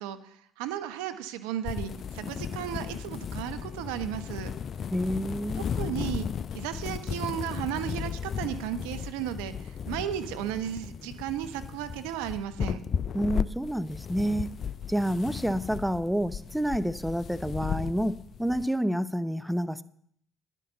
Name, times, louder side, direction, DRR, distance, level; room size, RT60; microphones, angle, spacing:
voice 1, 0.0-4.5 5.6-6.3 6.5-12.8, right 11 dB, 75° right, 10 dB, 0.9 m, -34 dB
sound 1, 1.6-18.7, left 7 dB, 50° left, 0.5 m, -35 dB
voice 2, 4.9-5.6 13.1-14.5 14.9-19.8, equal, 5° right, 14 dB, 0.7 m, -29 dB
11.0 x 10.0 x 6.8 m, 0.66 s
hypercardioid pair, 55°, 0 cm